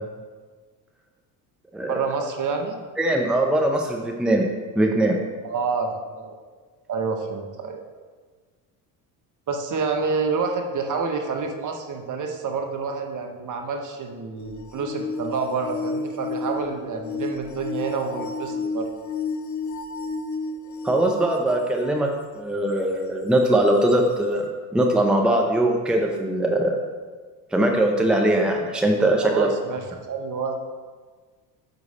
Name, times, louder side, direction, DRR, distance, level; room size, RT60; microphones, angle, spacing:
voice 1, 1.9-2.8 5.4-6.3 6.9-7.8 9.5-18.9 29.2-30.6, right 4 dB, 40° right, 4 dB, 1.0 m, -28 dB
voice 2, 3.0-4.5 4.8-5.2 20.8-22.1 22.3-24.4 24.7-26.7 27.5-29.5, right 1 dB, ahead, 1 dB, 0.7 m, -21 dB
sound 1, 14.4-22.1 22.8-22.9 23.9-24.0, left 3 dB, 40° left, 0.6 m, -32 dB
6.1 x 5.3 x 4.2 m, 1.5 s
hypercardioid pair, 75°, 48 cm